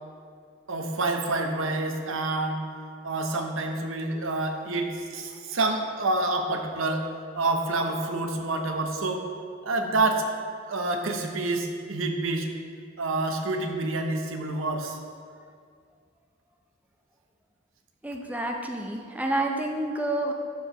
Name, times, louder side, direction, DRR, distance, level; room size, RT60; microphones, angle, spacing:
voice 1, 0.7-2.7 3.0-7.1 7.3-9.3 9.6-10.3 10.7-12.5 13.0-15.0, right 2 dB, 80° right, 4 dB, 0.8 m, -28 dB
voice 2, 18.0-20.3, right 1 dB, 5° right, 2 dB, 0.5 m, -29 dB
12.5 x 4.7 x 3.0 m, 2.2 s
head